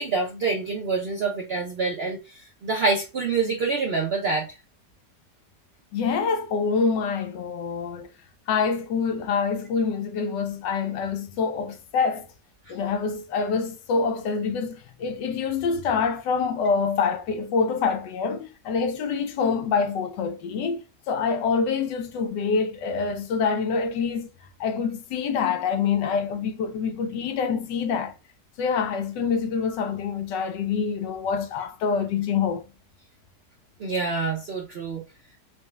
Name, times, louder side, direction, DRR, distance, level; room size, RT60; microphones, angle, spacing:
voice 1, 0.0-4.5 33.8-35.0, right 4 dB, 70° right, 0.6 m, -26 dB
voice 2, 5.9-8.1 8.5-12.3 12.7-24.3 24.6-28.1 28.6-32.6, left 5 dB, 90° left, 1.3 m, -26 dB
4.3 x 2.2 x 3.3 m
omnidirectional pair, 1.8 m